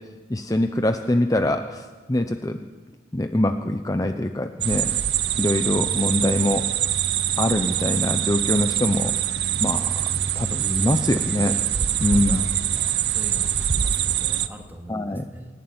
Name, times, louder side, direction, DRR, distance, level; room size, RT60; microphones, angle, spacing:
voice 1, 0.3-2.6 3.1-5.0 5.4-6.7 7.4-9.1 9.6-10.1 10.3-11.5 12.0-12.4 14.9-15.2, left 1 dB, 20° left, 7 dB, 0.7 m, -23 dB
sound 1, 4.6-14.5, right 10 dB, 65° right, 0.8 m, -24 dB
voice 2, 11.4-12.5 12.7-15.5, equal, 10° right, 2 dB, 2.4 m, -42 dB
27.0 x 11.5 x 9.5 m, 1.4 s
head